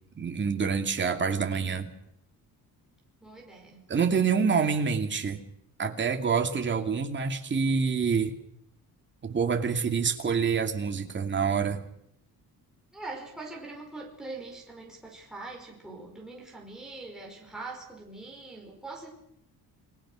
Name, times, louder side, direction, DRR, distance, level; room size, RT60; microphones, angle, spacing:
voice 1, 0.2-1.9 3.9-5.4 5.8-8.3 9.2-11.8, right 5 dB, 30° right, 4 dB, 2.5 m, -27 dB
voice 2, 3.2-3.9 12.9-19.1, right 3 dB, ahead, -2 dB, 5.1 m, -42 dB
29.0 x 21.0 x 6.4 m, 0.76 s
cardioid pair, 150°, 35 cm